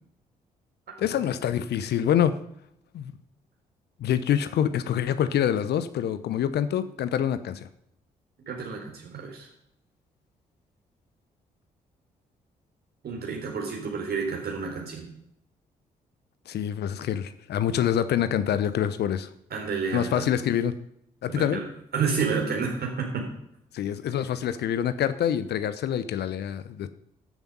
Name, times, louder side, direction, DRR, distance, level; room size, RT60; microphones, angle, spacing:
voice 1, 1.0-2.3 2.9-3.1 4.0-7.7 16.5-19.3 19.9-20.7 21.2-21.6 23.7-26.9, left 9 dB, 60° left, 13 dB, 0.8 m, -26 dB
voice 2, 8.5-9.5 13.0-15.1 19.5-20.3 21.3-21.6 21.9-23.3, right 5 dB, 55° right, 1 dB, 3.9 m, -30 dB
13.5 x 7.1 x 5.5 m, 0.73 s
figure-of-eight pair, 40°, 19 cm